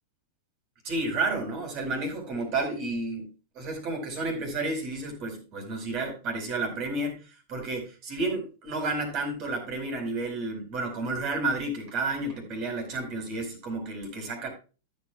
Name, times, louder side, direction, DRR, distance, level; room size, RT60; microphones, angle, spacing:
voice 1, 0.8-14.5, right 2 dB, 40° right, 4 dB, 4.4 m, -31 dB
14.0 x 8.5 x 2.3 m, 0.33 s
figure-of-eight pair, 100°, 0 cm